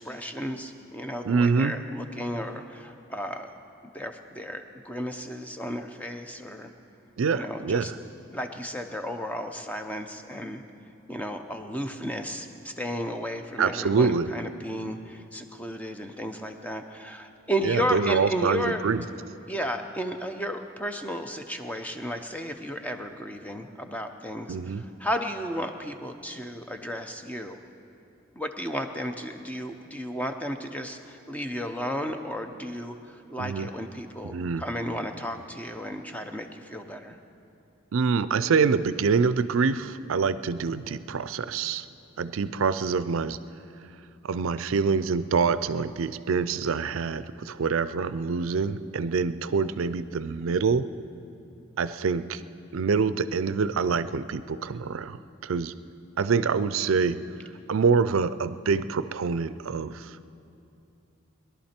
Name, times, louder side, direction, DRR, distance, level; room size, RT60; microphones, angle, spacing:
voice 1, 0.0-3.5 3.8-6.7 7.3-7.9 8.3-10.6 11.1-18.8 19.5-27.6 28.3-37.2, equal, 5° left, 6 dB, 0.6 m, -33 dB
voice 2, 1.2-1.8 7.2-8.0 13.6-14.4 17.6-19.1 24.5-24.8 33.4-33.7 34.2-34.6 37.9-41.9 42.2-43.4 44.2-50.9 51.8-52.4 52.7-55.7 56.2-57.2 57.7-60.2, right 5 dB, 70° right, 14 dB, 0.4 m, -25 dB
21.5 x 11.5 x 4.4 m, 2.7 s
head